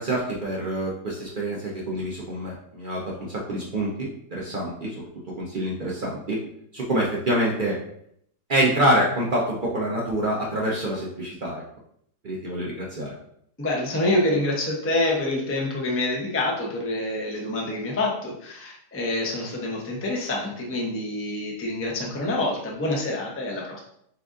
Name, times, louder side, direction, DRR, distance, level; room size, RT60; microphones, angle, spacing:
voice 1, 0.0-5.1 5.3-6.4 6.7-7.8 8.5-11.6 12.2-13.1, right 1 dB, 65° right, -3 dB, 0.4 m, -26 dB
voice 2, 13.6-23.8, left 2 dB, 20° left, -2 dB, 0.3 m, -26 dB
6.6 x 2.5 x 2.5 m, 0.70 s
omnidirectional pair, 1.8 m